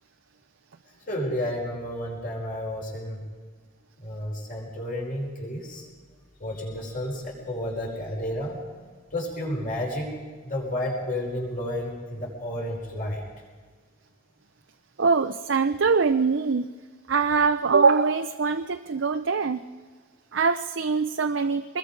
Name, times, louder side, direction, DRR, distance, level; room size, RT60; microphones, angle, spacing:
voice 1, 1.1-3.2 4.0-5.9 6.4-8.6 9.1-10.2 10.4-13.2, left 1 dB, 45° left, -1 dB, 5.4 m, -31 dB
voice 2, 15.0-16.7 17.1-19.6 20.3-21.8, right 4 dB, 65° right, 7 dB, 0.6 m, -23 dB
25.0 x 21.0 x 5.2 m, 1.5 s
head